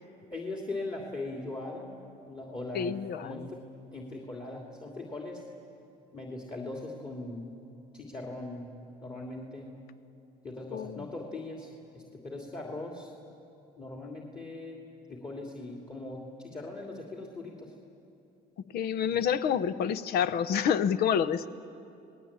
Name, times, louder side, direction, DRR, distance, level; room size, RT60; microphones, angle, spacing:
voice 1, 0.3-1.9 2.2-3.6 3.9-5.4 6.1-7.5 7.9-9.8 10.4-11.7 11.9-13.1 13.8-14.8 15.1-17.7 19.0-19.2, left 2 dB, 25° left, 0 dB, 3.0 m, -40 dB
voice 2, 2.7-3.4 10.7-11.0 18.7-21.5, left 8 dB, 70° left, 14 dB, 0.9 m, -28 dB
29.5 x 19.0 x 8.9 m, 2.7 s
cardioid pair, 110°, 17 cm